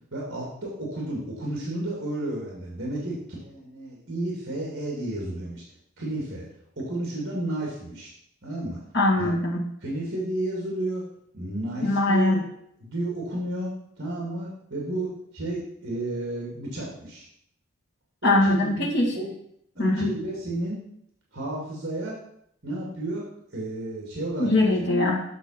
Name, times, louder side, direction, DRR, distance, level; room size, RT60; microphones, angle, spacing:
voice 1, 0.1-5.6 6.0-6.5 6.8-8.1 8.4-8.8 9.2-9.3 9.8-11.0 11.3-12.4 12.8-13.7 14.0-17.2 18.2-18.9 19.1-19.3 19.7-20.8 21.3-22.2 22.6-23.2 23.5-24.5, right 1 dB, 50° right, -3 dB, 2.5 m, -32 dB
voice 2, 8.9-9.6 11.8-12.4 18.2-19.2 19.8-20.1 24.4-25.2, left 2 dB, 50° left, -2 dB, 1.7 m, -22 dB
8.2 x 6.0 x 5.8 m, 0.71 s
head